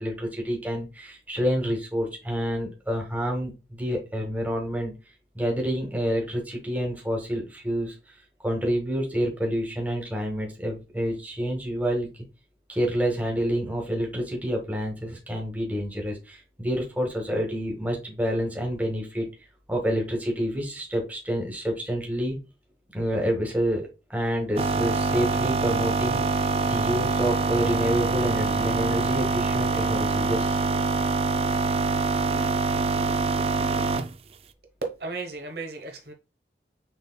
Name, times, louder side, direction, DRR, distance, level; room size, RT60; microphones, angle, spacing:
voice 1, 0.0-4.9 5.3-7.9 8.4-12.2 12.7-19.3 19.7-22.4 22.9-30.6, equal, 10° right, 1.5 m, -28 dB
sound 1, 24.6-34.1, right 3 dB, 35° right, 0.4 m, -25 dB
voice 2, 34.8-36.1, right 3 dB, 60° right, 0.9 m, -34 dB
6.5 x 3.3 x 2.2 m
head